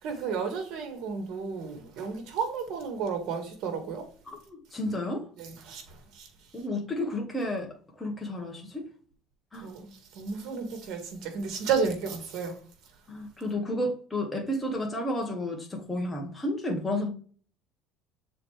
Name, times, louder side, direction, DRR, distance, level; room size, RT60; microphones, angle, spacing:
voice 1, 0.0-4.1 5.4-6.3 9.6-12.6, right 5 dB, 60° right, 1.9 m, -32 dB
voice 2, 4.3-5.3 6.5-7.7 8.0-8.9 9.5-9.7 13.1-17.1, left 1 dB, 10° left, 1.4 m, -31 dB
6.7 x 4.1 x 3.4 m
cardioid pair, 145°, 0 cm